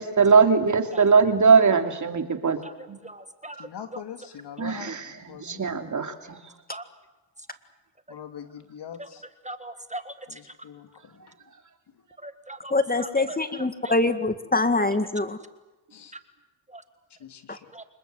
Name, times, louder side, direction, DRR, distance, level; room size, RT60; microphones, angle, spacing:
voice 1, 0.0-2.6 2.9-3.0 4.6-6.4, right 5 dB, 40° right, 6 dB, 3.0 m, -21 dB
voice 2, 3.0-3.7 3.9-4.0 6.7-6.8 9.0-9.1 9.4-10.1 12.2-13.4 13.8-13.9 16.7-16.8 17.7-17.8, right 1 dB, 15° right, 10 dB, 1.7 m, -39 dB
voice 3, 3.6-5.9 8.1-9.2 10.3-11.3 15.9-16.1 17.2-17.7, left 8 dB, 60° left, 8 dB, 2.7 m, -43 dB
voice 4, 12.7-15.4, left 2 dB, 20° left, 10 dB, 2.0 m, -24 dB
26.0 x 21.5 x 7.9 m, 1.1 s
supercardioid pair, 60°, 46 cm